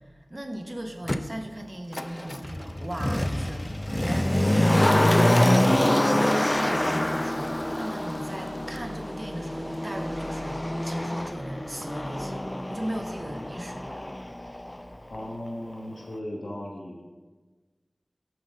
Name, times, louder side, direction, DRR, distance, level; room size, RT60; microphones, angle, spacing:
voice 1, 0.3-13.9, right 1 dB, 35° right, 4 dB, 0.9 m, -37 dB
Motor vehicle (road), 1.1-1.2 1.9-14.8 15.1-15.2, left 1 dB, 25° left, 0.4 m, -25 dB
voice 2, 15.1-17.0, left 1 dB, 85° left, -2 dB, 1.0 m, -36 dB
7.6 x 3.9 x 6.3 m, 1.3 s
wide cardioid pair, 50°, 0 cm